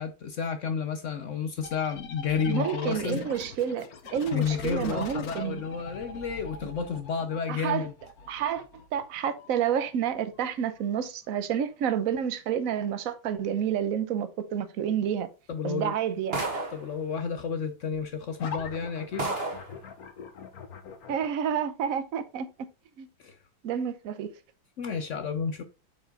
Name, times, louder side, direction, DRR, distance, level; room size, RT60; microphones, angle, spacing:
voice 1, 0.0-3.2 4.3-7.9 15.5-15.9 16.7-19.3 23.2-23.4 24.8-25.6, left 6 dB, 70° left, 0.7 m, -31 dB
sound 1, 1.6-11.0 18.4-21.3, left 5 dB, 55° left, 1.4 m, -42 dB
voice 2, 2.5-3.9 4.1-5.6 7.5-7.9 8.3-8.6 8.9-15.3 15.6-16.4 21.1-22.5 23.0-23.1 23.6-24.3, right 8 dB, 55° right, 1.0 m, -29 dB
sound 2, 16.3-16.9 17.9-18.0 18.6-18.7 19.2-19.7, right 3 dB, 30° right, 1.7 m, -31 dB
7.9 x 4.7 x 3.8 m
omnidirectional pair, 2.2 m